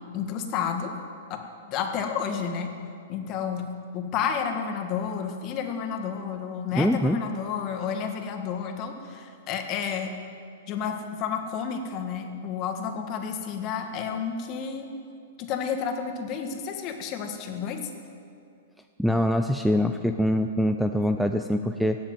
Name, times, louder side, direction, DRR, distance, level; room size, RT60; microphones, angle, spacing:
voice 1, 0.1-0.9 1.3-1.4 1.7-2.7 3.1-3.7 3.9-10.1 10.7-14.9 15.4-17.9, left 7 dB, 35° left, 5 dB, 1.7 m, -31 dB
voice 2, 6.7-7.2 19.0-22.0, left 1 dB, ahead, 5 dB, 0.5 m, -24 dB
16.5 x 7.3 x 9.3 m, 2.5 s
hypercardioid pair, 130°, 0 cm